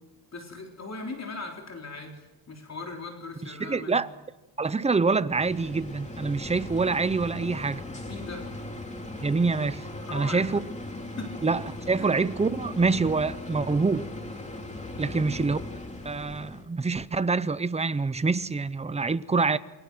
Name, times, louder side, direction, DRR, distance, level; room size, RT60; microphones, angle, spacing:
voice 1, 0.3-4.0 8.1-8.4 10.0-10.5 11.2-11.4 12.0-12.1 15.0-15.3, left 3 dB, 35° left, 3.7 m, -39 dB
voice 2, 3.4-4.1 4.6-7.8 9.2-9.8 10.1-10.6 11.4-14.1 15.0-15.6 16.0-19.6, right 4 dB, 15° right, 0.7 m, -26 dB
sound 1, 5.3-16.6, left 1 dB, 15° left, 3.1 m, -38 dB
29.0 x 22.5 x 6.2 m
cardioid pair, 130°, 44 cm